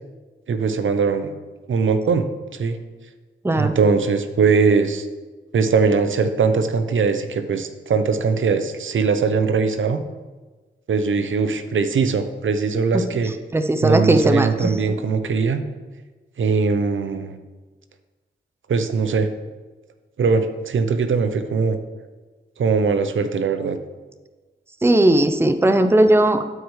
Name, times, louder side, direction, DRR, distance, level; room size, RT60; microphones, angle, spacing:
voice 1, 0.5-1.3 1.7-2.8 3.5-5.1 5.5-10.0 10.9-13.3 13.8-15.6 16.4-17.4 18.7-19.3 20.2-21.8 22.6-23.8, right 5 dB, 65° right, 9 dB, 0.7 m, -20 dB
voice 2, 3.4-3.8 13.5-14.7 24.8-26.4, right 1 dB, 10° right, 8 dB, 0.6 m, -17 dB
12.5 x 4.8 x 3.2 m, 1.3 s
cardioid pair, 50°, 21 cm